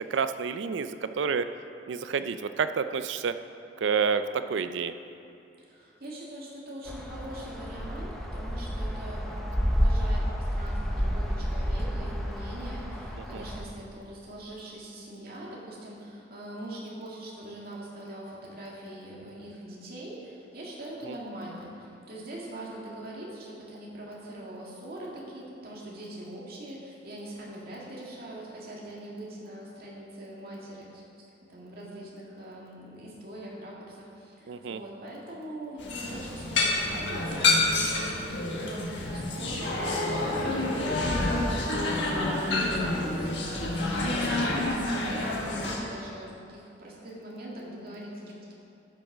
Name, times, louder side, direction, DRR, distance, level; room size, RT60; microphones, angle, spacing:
voice 1, 0.1-1.4 1.9-3.3 3.8-4.2 4.5-4.9 13.2-13.4 21.1-21.2 34.5-34.8, right 6 dB, 70° right, 11 dB, 0.4 m, -29 dB
voice 2, 5.6-31.0 31.5-48.5, right 1 dB, 55° right, -4 dB, 2.0 m, -42 dB
sound 1, 6.9-13.6, equal, ahead, 0.7 m, -30 dB
sound 2, 35.8-45.8, left 2 dB, 65° left, 1.5 m, -28 dB
11.5 x 6.3 x 4.9 m, 2.7 s
head